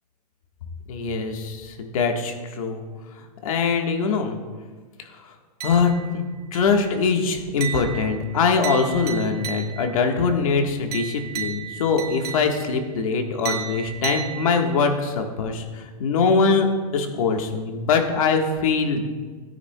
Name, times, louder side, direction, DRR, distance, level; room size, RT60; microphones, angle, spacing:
voice 1, 0.9-2.8 3.2-4.4 5.2-5.3 5.6-6.2 6.5-16.7 16.9-19.1, left 5 dB, 55° left, 3 dB, 1.5 m, -23 dB
sound 1, 5.6-6.2 6.5-6.9 7.6-10.0 10.9-12.8 13.4-14.9, right 8 dB, 70° right, 1.7 m, -34 dB
17.0 x 9.7 x 2.3 m, 1.5 s
hypercardioid pair, 165°, 21 cm